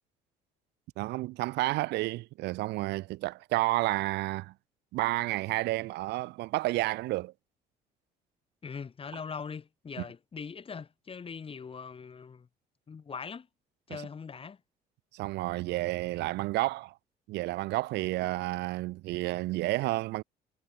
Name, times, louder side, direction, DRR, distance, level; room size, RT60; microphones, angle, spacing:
voice 1, 1.0-4.5 4.9-7.3 13.9-14.0 15.1-16.9 17.3-20.2, right 19 dB, 85° right, 3.8 m, -31 dB
voice 2, 8.6-12.5 12.9-13.5 13.9-14.6, left 6 dB, 35° left, 7.3 m, -41 dB
cardioid pair, 110°, 17 cm